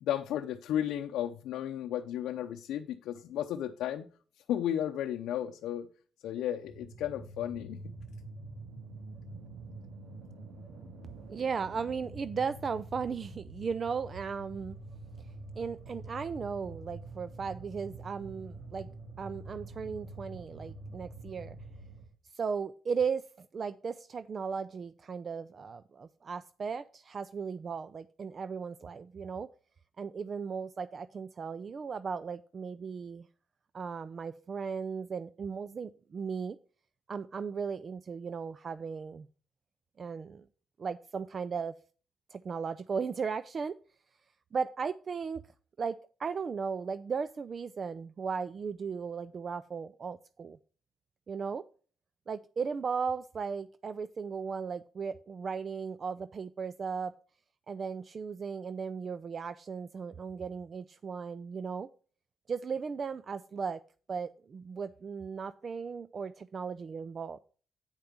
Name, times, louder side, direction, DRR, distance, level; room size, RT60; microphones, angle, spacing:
voice 1, 0.0-4.1 4.5-5.9 6.2-7.8, left 11 dB, 85° left, 4 dB, 0.6 m, -34 dB
sound 1, 6.6-22.1, right 2 dB, 80° right, 2.1 m, -46 dB
voice 2, 11.3-14.8 15.6-18.9 19.2-21.6 22.3-29.5 30.0-33.3 33.7-36.6 37.1-39.3 40.0-40.4 40.8-41.7 42.3-43.8 44.5-45.4 45.8-50.6 51.3-51.6 52.3-57.1 57.7-61.9 62.5-63.8 64.1-67.4, right 5 dB, 45° right, 14 dB, 0.4 m, -36 dB
8.8 x 5.2 x 5.9 m, 0.40 s
cardioid pair, 90°, 0 cm